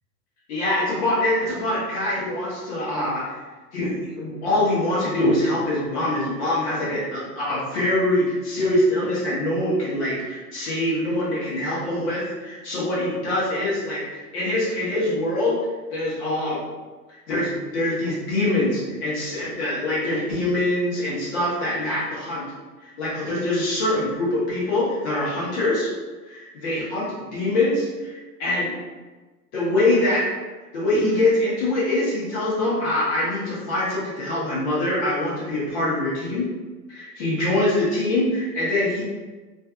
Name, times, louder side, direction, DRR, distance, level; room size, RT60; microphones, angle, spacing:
voice 1, 0.5-3.4 3.7-15.6 15.9-16.6 17.1-22.4 22.8-25.9 26.3-28.7 29.5-30.3 30.7-36.5 36.9-39.0, left 1 dB, 45° left, -7 dB, 0.9 m, -24 dB
2.5 x 2.5 x 2.4 m, 1.3 s
figure-of-eight pair, 95°, 49 cm